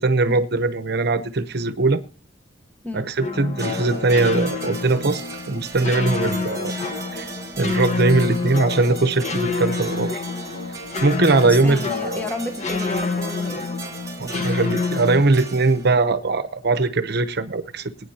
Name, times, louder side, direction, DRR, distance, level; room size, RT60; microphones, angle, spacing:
voice 1, 0.0-2.0 2.9-6.8 7.1-7.3 7.6-10.2 11.0-12.2 14.2-17.9, right 3 dB, 60° right, 0.8 m, -20 dB
sound 1, 3.2-15.2, left 4 dB, 40° left, 1.3 m, -28 dB
sound 2, 3.6-16.1, right 5 dB, 15° right, 4.5 m, -38 dB
voice 2, 11.4-13.8, left 1 dB, 10° left, 1.2 m, -32 dB
22.0 x 9.7 x 2.9 m
head